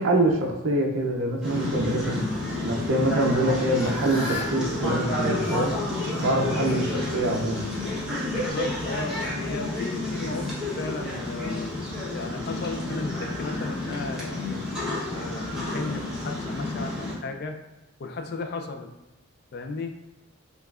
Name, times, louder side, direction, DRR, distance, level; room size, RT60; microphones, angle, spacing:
voice 1, 0.0-2.2 2.6-5.7 6.2-6.8 7.1-7.6, right 1 dB, 65° right, 0 dB, 0.5 m, -25 dB
sound 1, 1.4-17.1, left 2 dB, 5° right, 0.9 m, -30 dB
Fowl / Bird, 3.6-8.5, left 2 dB, 70° left, 1.0 m, -40 dB
voice 2, 6.4-6.8 8.3-11.7 12.1-14.7 15.1-17.6 18.0-18.9 19.5-20.0, left 3 dB, 50° left, 5 dB, 0.4 m, -35 dB
5.3 x 2.3 x 2.3 m, 0.98 s
head